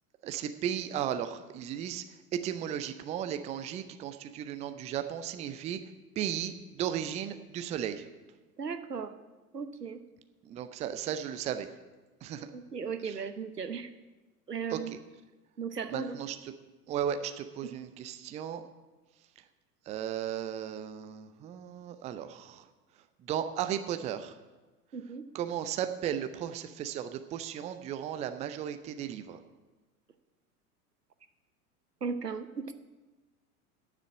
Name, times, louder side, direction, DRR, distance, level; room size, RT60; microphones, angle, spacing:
voice 1, 0.2-2.0 2.3-5.8 6.2-8.0 10.4-11.7 12.2-12.5 13.0-13.2 14.7-15.0 15.9-16.5 16.9-18.6 19.9-22.6 23.2-24.4 25.3-29.4, right 9 dB, 15° right, 9 dB, 0.5 m, -35 dB
voice 2, 8.6-9.1 9.5-10.0 12.5-13.9 14.5-14.9 15.6-16.2 24.9-25.2 32.0-32.7, right 5 dB, 85° right, 10 dB, 0.9 m, -36 dB
9.4 x 7.5 x 8.6 m, 1.2 s
figure-of-eight pair, 90°, 46 cm